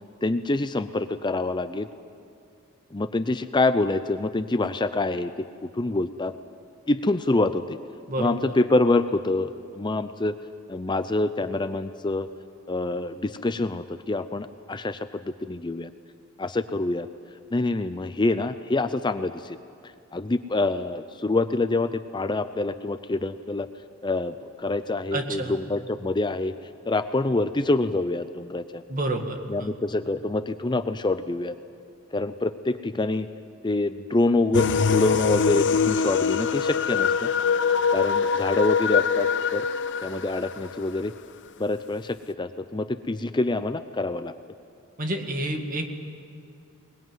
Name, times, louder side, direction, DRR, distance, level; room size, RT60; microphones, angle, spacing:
voice 1, 0.2-1.9 2.9-5.3 5.6-6.3 6.9-7.8 8.2-10.3 10.7-12.3 12.7-15.9 16.4-17.1 17.5-19.6 20.1-23.7 24.0-26.5 26.9-28.8 29.5-31.5 32.1-33.3 33.6-37.3 37.9-39.7 40.0-41.1 41.6-44.3, left 2 dB, 20° left, 11 dB, 0.5 m, -26 dB
voice 2, 8.1-8.5 25.1-25.6 28.9-29.7 45.0-45.9, right 1 dB, 40° right, 4 dB, 2.1 m, -29 dB
sound 1, 34.5-40.7, left 6 dB, 55° left, 0.8 m, -23 dB
22.5 x 20.5 x 9.3 m, 2.4 s
head